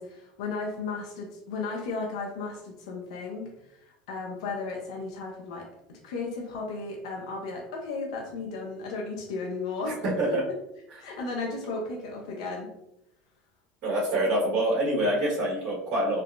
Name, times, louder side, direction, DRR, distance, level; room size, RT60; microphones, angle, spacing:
voice 1, 0.0-10.4 11.0-12.7, left 3 dB, 85° left, 0 dB, 0.6 m, -35 dB
voice 2, 10.0-10.4 13.8-16.2, right 1 dB, 65° right, -7 dB, 1.2 m, -26 dB
3.3 x 2.0 x 2.4 m, 0.84 s
supercardioid pair, 90°, 3 cm